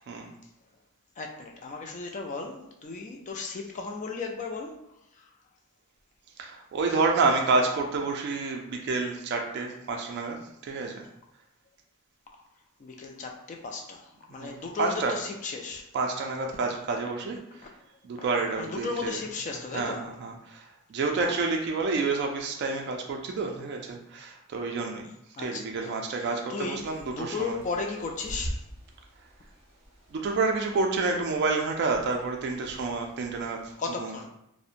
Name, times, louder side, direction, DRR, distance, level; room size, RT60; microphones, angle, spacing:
voice 1, 1.2-4.9 5.1-5.3 6.9-7.0 12.8-15.9 18.2-18.3 18.6-20.1 21.2-21.3 25.4-28.6 33.8-34.3, left 4 dB, 35° left, 2 dB, 0.3 m, -35 dB
voice 2, 6.4-10.4 10.6-11.0 14.3-15.1 15.9-17.7 18.0-19.2 19.7-25.1 25.4-27.6 30.1-33.7 34.0-34.1, right 3 dB, 50° right, 1 dB, 0.3 m, -29 dB
Bird, 26.7-33.7, equal, 30° right, 0.7 m, -44 dB
2.7 x 2.0 x 2.4 m, 0.80 s
head